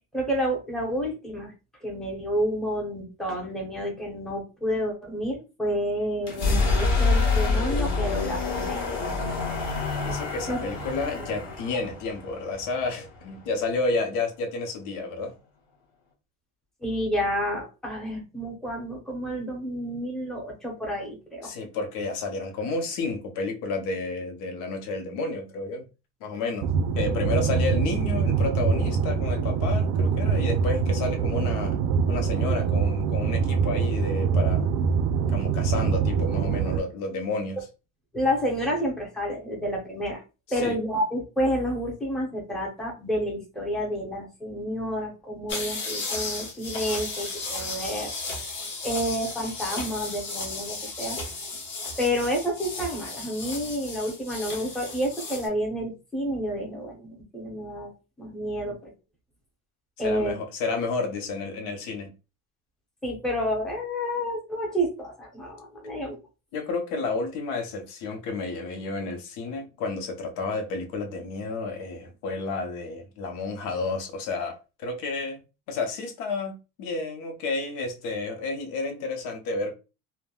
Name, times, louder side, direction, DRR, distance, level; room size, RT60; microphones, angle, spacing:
voice 1, 0.1-1.5 1.8-8.9 10.5-10.6 16.8-21.5 38.1-40.2 40.5-48.1 48.8-51.2 52.0-57.9 58.2-58.9 60.0-60.4 63.0-66.2, equal, ahead, 0.7 m, -29 dB
sound 1, 6.2-13.9, left 3 dB, 55° left, 1.0 m, -27 dB
voice 2, 10.0-15.3 21.4-25.9 26.2-26.7 27.0-31.8 32.1-34.7 35.3-37.6 40.5-40.8 58.6-58.8 60.0-62.1 66.5-75.4 75.7-79.7, left 3 dB, 80° left, 0.8 m, -31 dB
sound 2, 26.6-36.8, right 6 dB, 65° right, 0.4 m, -24 dB
sound 3, 45.5-55.5, left 3 dB, 35° left, 1.0 m, -34 dB
3.3 x 2.1 x 2.2 m
cardioid pair, 160°, 33 cm